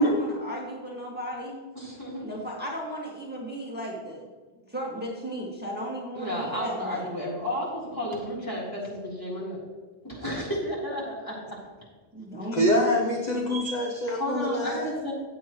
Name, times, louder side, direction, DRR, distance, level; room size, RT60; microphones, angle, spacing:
voice 1, 0.0-1.6 2.2-4.3 4.7-7.2 12.1-13.0, right 1 dB, 10° right, -4 dB, 2.0 m, -35 dB
voice 2, 1.8-2.4 6.1-9.6 10.0-11.4 14.2-15.1, equal, 20° left, -6 dB, 3.9 m, -32 dB
voice 3, 12.5-14.9, left 1 dB, 45° left, 2 dB, 1.0 m, -25 dB
15.5 x 8.6 x 3.1 m, 1.3 s
omnidirectional pair, 1.0 m